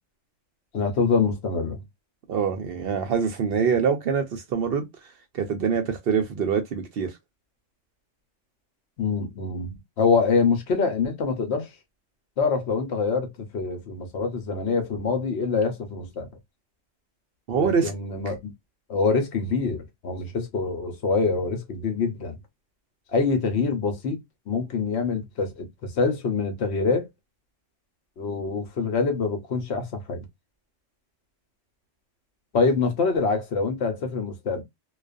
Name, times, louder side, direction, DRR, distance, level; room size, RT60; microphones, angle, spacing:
voice 1, 0.7-1.8 9.0-11.7 12.4-16.3 17.5-18.5 18.9-22.4 23.1-24.2 24.5-27.1 28.2-30.2 32.5-34.6, left 4 dB, 65° left, 1.0 m, -25 dB
voice 2, 2.3-4.9 5.3-7.1 17.5-17.9, right 6 dB, 60° right, 0.7 m, -24 dB
2.3 x 2.3 x 2.3 m
omnidirectional pair, 1.2 m